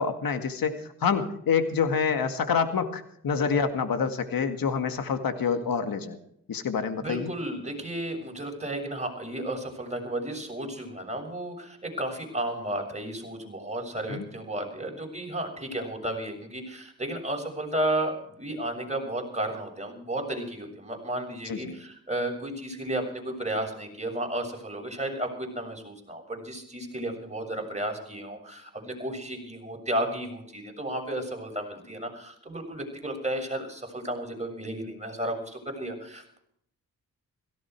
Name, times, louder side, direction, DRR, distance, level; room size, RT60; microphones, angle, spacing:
voice 1, 0.0-6.2 6.5-7.3 14.1-14.2 21.5-21.7, left 6 dB, 75° left, 8 dB, 2.1 m, -27 dB
voice 2, 7.0-36.4, right 1 dB, 20° right, 2 dB, 6.9 m, -33 dB
17.0 x 16.0 x 4.7 m, 0.69 s
supercardioid pair, 45°, 36 cm